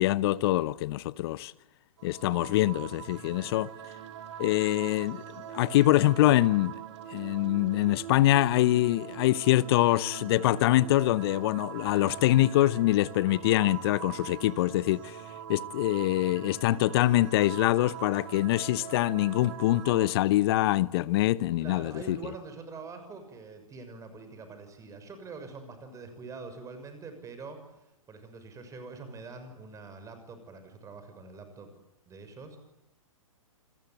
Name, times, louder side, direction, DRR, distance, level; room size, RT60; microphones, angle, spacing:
voice 1, 0.0-1.5 2.0-3.7 4.4-5.2 5.5-6.7 7.1-15.2 15.5-22.2, left 15 dB, 45° left, 1.0 m, -24 dB
sound 1, 2.0-20.1, right 10 dB, 55° right, 4.0 m, -43 dB
voice 2, 21.6-27.6 28.1-31.7 32.1-32.6, right 4 dB, 20° right, 6.6 m, -44 dB
29.0 x 21.5 x 9.2 m
figure-of-eight pair, 115°, 18 cm